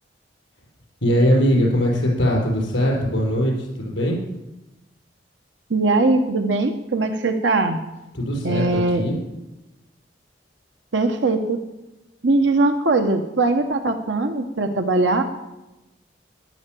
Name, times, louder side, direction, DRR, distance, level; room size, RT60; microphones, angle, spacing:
voice 1, 1.0-4.2 8.1-9.2, equal, 80° left, -2 dB, 5.4 m, -21 dB
voice 2, 5.7-7.8 8.4-9.0 10.9-11.6 12.2-15.2, right 2 dB, 85° right, 6 dB, 1.1 m, -20 dB
13.5 x 11.5 x 7.6 m, 0.99 s
head